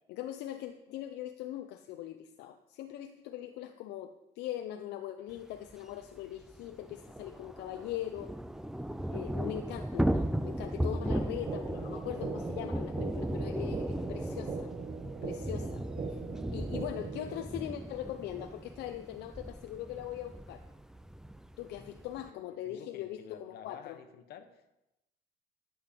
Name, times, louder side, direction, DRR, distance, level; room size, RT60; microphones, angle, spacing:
voice 1, 0.1-8.3 9.1-14.7 15.2-15.8 16.1-16.2 16.5-20.6 21.6-24.0, left 12 dB, 85° left, 7 dB, 0.6 m, -41 dB
Thunder / Rain, 5.7-5.8 6.0-6.1 6.4-22.3, right 1 dB, 5° right, 0.4 m, -36 dB
sound 1, 11.5-17.5, right 5 dB, 40° right, 0.8 m, -41 dB
voice 2, 22.3-24.8, left 9 dB, 70° left, 9 dB, 1.1 m, -50 dB
11.5 x 7.8 x 5.1 m, 0.93 s
cardioid pair, 110°, 17 cm